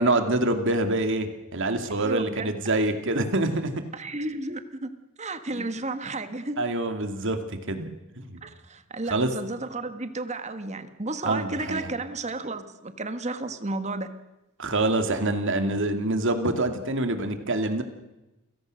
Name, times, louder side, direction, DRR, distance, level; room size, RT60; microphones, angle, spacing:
voice 1, 0.0-3.7 5.5-5.6 6.6-7.9 8.2-8.4 9.1-9.3 11.2-11.9 14.6-17.8, right 2 dB, 60° right, 7 dB, 2.4 m, -26 dB
voice 2, 1.9-2.5 3.9-4.9 5.2-6.6 8.4-14.1, right 2 dB, 30° right, 10 dB, 1.6 m, -32 dB
29.5 x 17.0 x 6.4 m, 1.0 s
head